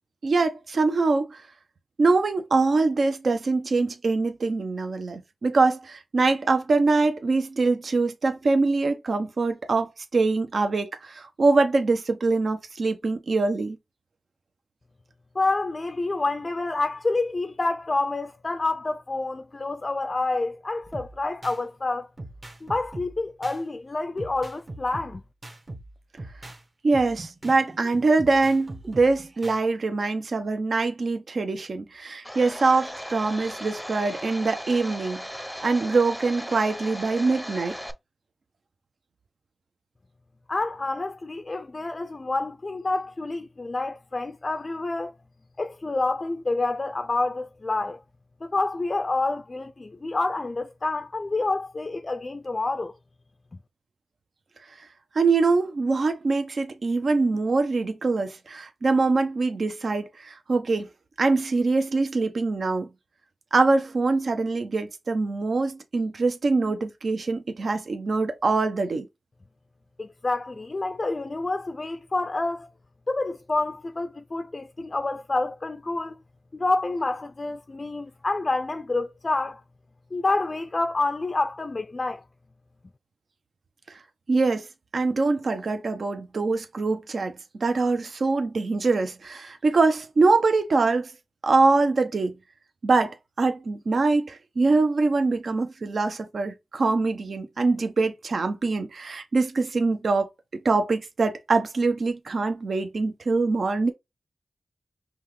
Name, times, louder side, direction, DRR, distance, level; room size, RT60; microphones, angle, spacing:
voice 1, 0.2-1.4 2.0-13.8 26.8-35.2 35.6-37.8 55.1-60.9 61.2-62.9 63.5-69.1 84.3-84.7 84.9-91.1 91.4-92.4 92.8-103.9, right 3 dB, 65° right, 0.8 m, -24 dB
voice 2, 15.4-22.1 22.6-25.2 40.5-45.1 45.6-48.0 48.4-52.9 70.0-72.7 73.1-76.2 76.5-79.6 80.1-82.2, left 2 dB, 40° left, 0.4 m, -28 dB
sound 1, 20.8-21.6 22.2-23.6 24.2-26.6 26.9-29.6, right 2 dB, 35° right, 1.2 m, -41 dB
Domestic sounds home sounds, 32.2-37.9, equal, ahead, 0.7 m, -37 dB
5.4 x 2.4 x 3.2 m
wide cardioid pair, 70°, 0 cm